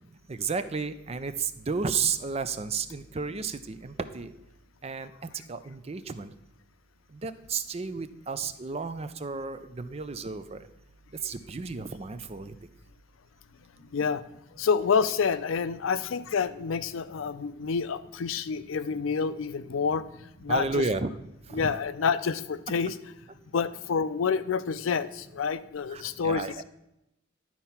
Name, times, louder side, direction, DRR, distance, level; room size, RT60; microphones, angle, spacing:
voice 1, 0.3-4.3 4.8-5.1 5.5-6.3 7.2-10.6 11.2-12.5 20.5-21.1 21.5-21.8 25.9-26.6, right 4 dB, 30° right, 12 dB, 0.5 m, -32 dB
voice 2, 13.9-14.2 14.6-20.1 20.4-20.8 21.5-23.0 23.5-26.4, left 5 dB, 75° left, 14 dB, 0.4 m, -28 dB
11.0 x 4.4 x 5.7 m, 0.85 s
head